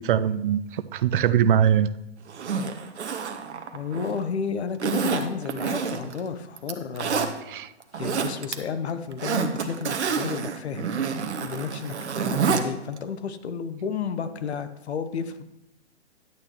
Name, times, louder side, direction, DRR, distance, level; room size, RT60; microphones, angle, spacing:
voice 1, 0.0-1.9 7.5-7.7, right 9 dB, 50° right, 14 dB, 0.5 m, -22 dB
Zipper (clothing), 2.3-4.2 4.8-6.2 6.6-7.3 7.8-8.5 8.9-12.6 13.0-13.1, right 6 dB, 75° right, 1.1 m, -28 dB
voice 2, 3.7-7.3 7.9-10.9 11.4-15.4, left 6 dB, 70° left, 10 dB, 0.9 m, -32 dB
10.5 x 8.6 x 3.0 m, 0.88 s
hypercardioid pair, 130°, 34 cm